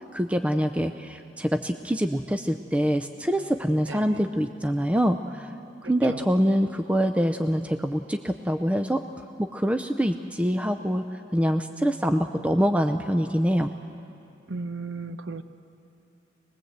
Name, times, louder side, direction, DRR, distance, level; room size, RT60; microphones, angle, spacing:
voice 1, 0.0-5.5 5.8-9.0 9.4-11.0 11.3-13.7, equal, 5° right, 7 dB, 0.4 m, -25 dB
voice 2, 3.9-4.2 5.8-6.2 14.5-15.4, right 3 dB, 75° right, 11 dB, 0.8 m, -36 dB
23.0 x 20.5 x 8.0 m, 2.7 s
head